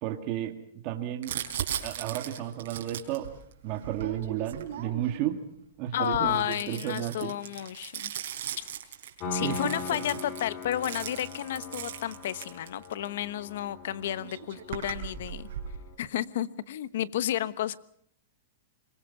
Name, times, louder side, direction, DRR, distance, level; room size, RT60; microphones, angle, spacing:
voice 1, 0.0-0.5 0.8-1.3 1.8-3.3 3.6-5.4 5.8-7.3 9.4-9.6 9.9-10.0, right 12 dB, 40° right, 4 dB, 2.1 m, -32 dB
Crumpling crinkling, 1.2-5.3 6.0-13.1 13.9-14.0 14.2-15.8, right 10 dB, 70° right, 4.1 m, -38 dB
voice 2, 5.9-8.1 8.6-8.7 9.3-15.5 16.0-17.8, left 11 dB, 70° left, 15 dB, 1.1 m, -32 dB
Piano, 9.2-15.9, left 4 dB, 35° left, 2.8 m, -40 dB
25.5 x 22.0 x 5.9 m, 0.69 s
supercardioid pair, 155°, 0 cm